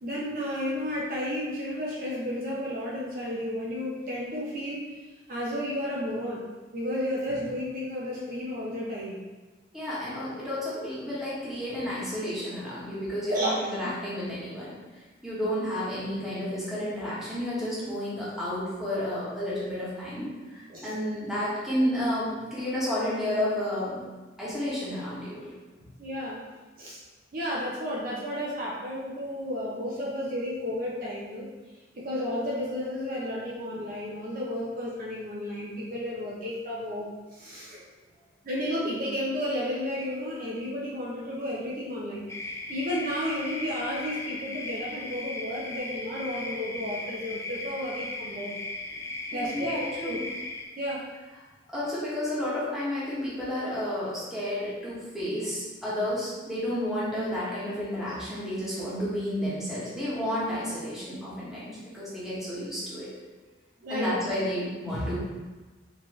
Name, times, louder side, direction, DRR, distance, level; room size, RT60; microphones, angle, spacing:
voice 1, 0.0-4.8 5.3-6.4 6.7-9.2 13.3-13.6 20.7-21.0 26.0-26.4 26.8-27.0 27.3-31.5 31.9-37.8 38.4-48.6 49.3-50.2 50.8-51.0 63.8-64.1, equal, 45° right, -5 dB, 0.6 m, -32 dB
voice 2, 9.7-14.7 15.2-24.0 24.4-25.5 49.3-50.2 51.7-63.1 63.9-65.2, left 1 dB, ahead, -10 dB, 1.3 m, -31 dB
sound 1, 42.3-50.7, left 2 dB, 15° left, 0.3 m, -37 dB
4.4 x 2.9 x 3.1 m, 1.2 s
head